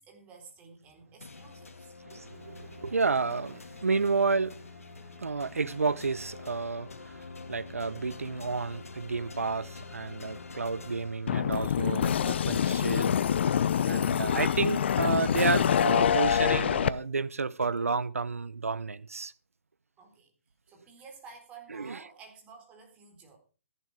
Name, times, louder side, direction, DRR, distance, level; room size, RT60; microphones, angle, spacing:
voice 1, 0.0-1.9 20.0-20.3 20.7-23.4, right 5 dB, 15° right, 4.0 m, -52 dB
sound 1, 1.2-11.8, left 4 dB, 85° left, 1.9 m, -46 dB
voice 2, 2.0-13.2 13.8-19.3 21.7-22.0, right 4 dB, 90° right, 0.8 m, -31 dB
sound 2, 11.3-16.9, left 8 dB, 55° left, 0.8 m, -25 dB
14.0 x 11.0 x 5.0 m
hypercardioid pair, 145°, 7 cm